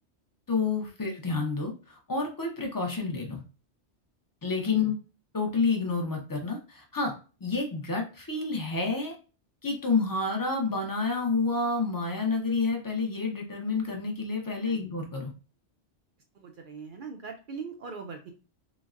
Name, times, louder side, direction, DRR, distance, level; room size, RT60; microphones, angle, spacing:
voice 1, 0.5-3.4 4.4-4.9 5.3-7.1 7.4-9.2 9.6-15.3, left 4 dB, 35° left, 1 dB, 0.3 m, -29 dB
voice 2, 16.3-18.3, right 5 dB, 60° right, 3 dB, 0.6 m, -41 dB
3.9 x 2.0 x 2.4 m, 0.33 s
omnidirectional pair, 1.2 m